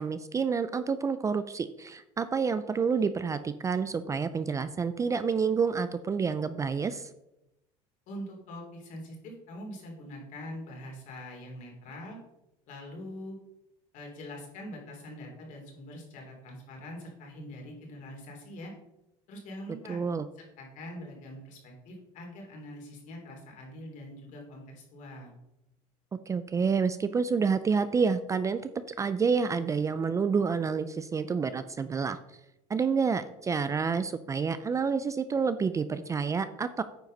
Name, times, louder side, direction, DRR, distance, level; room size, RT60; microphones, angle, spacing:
voice 1, 0.0-7.1 19.9-20.3 26.3-28.6 29.0-32.2 32.7-36.8, right 5 dB, 20° right, 12 dB, 0.4 m, -28 dB
voice 2, 8.1-12.2 12.7-13.4 13.9-18.7 19.3-20.0 20.6-25.4, left 1 dB, 60° left, 0 dB, 3.3 m, -43 dB
9.1 x 4.9 x 5.4 m, 0.89 s
supercardioid pair, 120°, 15 cm